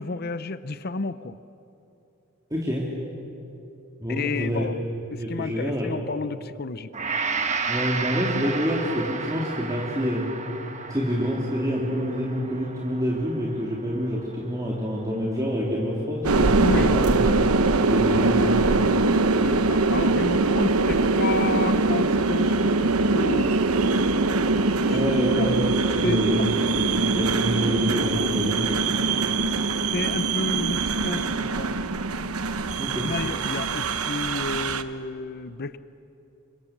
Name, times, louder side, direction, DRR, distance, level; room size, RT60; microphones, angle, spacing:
voice 1, 0.0-1.4 4.1-4.8 5.1-6.9 16.6-17.0 19.4-23.5 23.8-24.2 24.9-25.0 25.3-25.5 26.0-26.6 27.2-27.3 28.1-28.4 28.9-29.2 29.9-31.7 33.0-35.8, left 3 dB, 45° left, 14 dB, 0.6 m, -31 dB
voice 2, 2.5-2.9 4.0-4.6 5.2-5.9 7.7-10.3 10.9-17.5 17.9-18.9 24.9-25.5 26.0-28.6 32.8-33.1, equal, 15° right, -4 dB, 3.0 m, -27 dB
Gong, 6.9-15.2 15.7-15.9, right 4 dB, 30° right, 1.4 m, -33 dB
sound 1, 16.2-34.8, right 3 dB, 90° right, 1.1 m, -22 dB
29.0 x 25.0 x 7.4 m, 2.9 s
head